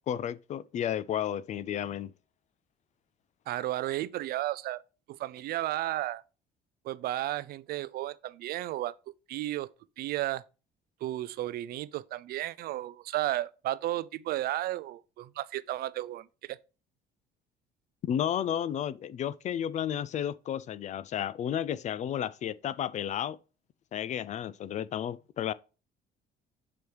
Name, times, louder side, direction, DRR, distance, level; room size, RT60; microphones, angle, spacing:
voice 1, 0.0-2.1 18.0-23.4 23.9-25.5, left 10 dB, 45° left, 0.4 m, -32 dB
voice 2, 3.5-4.8 5.1-6.2 6.9-8.9 9.3-9.7 10.0-10.4 11.0-16.6, right 14 dB, 65° right, 0.4 m, -33 dB
6.9 x 3.1 x 4.7 m
cardioid pair, 110°, 17 cm